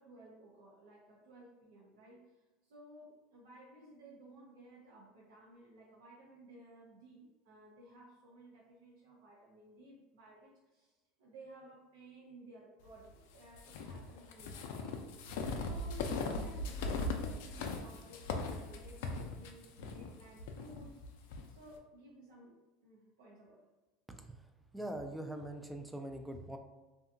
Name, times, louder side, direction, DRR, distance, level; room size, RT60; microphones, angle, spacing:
voice 1, 0.0-2.2 2.7-15.2 15.7-21.0 21.5-23.6, right 1 dB, 90° right, -6 dB, 0.6 m, -56 dB
sound 1, 13.5-21.4, left 3 dB, 80° left, 0.3 m, -39 dB
voice 2, 24.1-24.4 24.7-26.6, right 1 dB, 10° right, 5 dB, 0.4 m, -43 dB
2.7 x 2.3 x 2.5 m, 1.1 s
supercardioid pair, 105°, 0 cm